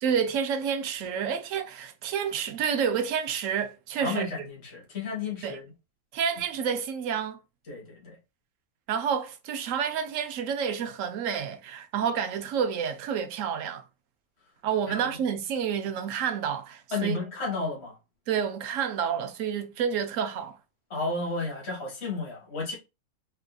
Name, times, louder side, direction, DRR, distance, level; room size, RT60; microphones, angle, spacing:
voice 1, 0.0-4.3 5.4-5.6 6.1-7.4 8.9-13.8 14.6-17.2 18.3-20.6, right 7 dB, 65° right, 0.9 m, -29 dB
voice 2, 4.0-5.7 7.7-8.2 14.9-15.1 16.9-18.0 20.9-22.7, left 3 dB, 45° left, 1.7 m, -32 dB
4.3 x 2.6 x 2.2 m
omnidirectional pair, 1.6 m